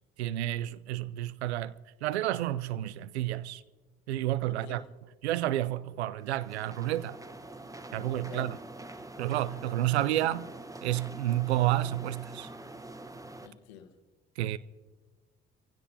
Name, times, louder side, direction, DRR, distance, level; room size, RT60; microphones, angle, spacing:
voice 1, 0.2-1.7 2.0-3.6 4.1-4.8 5.2-7.2 7.9-8.6 9.2-10.5 10.8-12.5 14.4-14.6, right 14 dB, 90° right, 0.5 m, -30 dB
voice 2, 4.5-4.9 8.3-8.5 13.4-13.9, left 9 dB, 85° left, 1.2 m, -46 dB
sound 1, 6.2-13.5, right 2 dB, 10° right, 1.1 m, -45 dB
23.5 x 16.0 x 2.8 m
hypercardioid pair, 50°, 32 cm